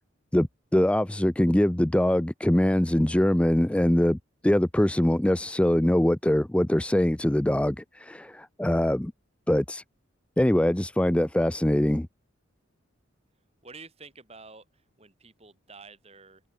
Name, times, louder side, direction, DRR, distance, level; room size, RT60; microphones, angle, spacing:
voice 1, 0.7-4.2 4.4-9.1 9.5-9.8 10.4-12.1, left 1 dB, 5° left, 0.3 m, -23 dB
voice 2, 13.6-16.4, right 4 dB, 30° right, 4.4 m, -49 dB
head